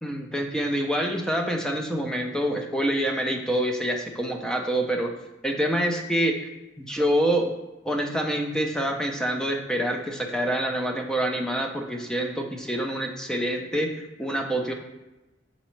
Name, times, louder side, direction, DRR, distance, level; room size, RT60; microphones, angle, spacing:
voice 1, 0.0-5.1 5.4-6.5 6.8-7.5 7.8-13.9 14.2-14.7, right 1 dB, 5° left, 3 dB, 0.4 m, -26 dB
4.2 x 3.7 x 3.1 m, 1.0 s
head